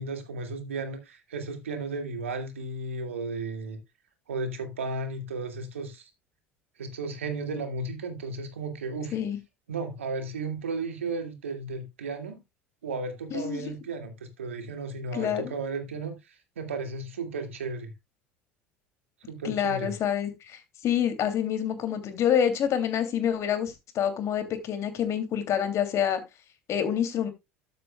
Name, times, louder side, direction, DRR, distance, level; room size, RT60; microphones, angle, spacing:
voice 1, 0.0-3.8 4.3-6.1 6.8-9.2 9.7-12.4 12.8-17.9 19.3-19.9, right 3 dB, 80° right, 2.3 m, -34 dB
voice 2, 13.3-13.6 15.1-15.5 19.4-26.2 26.7-27.3, left 9 dB, 45° left, 2.8 m, -27 dB
13.0 x 7.9 x 2.3 m
figure-of-eight pair, 70°, 7 cm